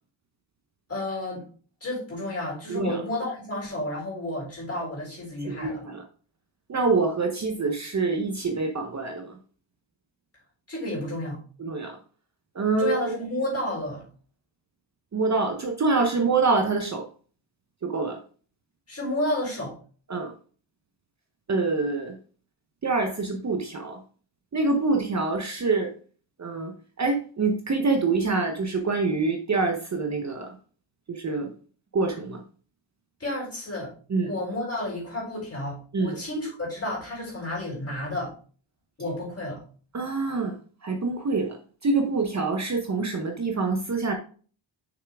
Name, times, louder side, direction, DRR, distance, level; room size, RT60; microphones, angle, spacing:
voice 1, 0.9-1.4 1.8-5.8 10.7-11.4 12.8-14.1 18.9-19.7 33.2-33.9 34.2-38.3 39.0-39.6, left 1 dB, 30° left, -3 dB, 4.0 m, -31 dB
voice 2, 2.7-3.0 5.5-6.0 6.7-9.3 11.6-12.0 12.5-13.1 15.1-17.1 17.8-18.2 20.1-20.3 21.5-22.2 22.8-24.0 24.5-25.9 26.4-30.6 31.1-31.5 31.9-32.4 34.1-34.3 35.9-36.2 39.9-40.5 40.8-41.6 41.8-44.1, right 3 dB, 35° right, 3 dB, 0.8 m, -26 dB
6.4 x 6.0 x 3.4 m, 0.41 s
wide cardioid pair, 175°, 47 cm